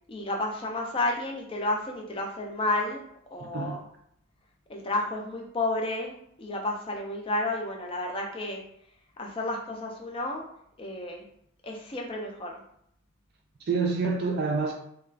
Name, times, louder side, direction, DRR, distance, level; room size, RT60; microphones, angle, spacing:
voice 1, 0.1-3.0 3.3-3.8 4.7-6.1 6.4-8.6 9.2-10.4 10.8-11.2 11.6-12.5, left 2 dB, 25° left, 1 dB, 0.4 m, -31 dB
voice 2, 3.4-3.8 13.6-14.7, right 4 dB, 50° right, 1 dB, 0.3 m, -27 dB
2.3 x 2.3 x 3.2 m, 0.71 s
head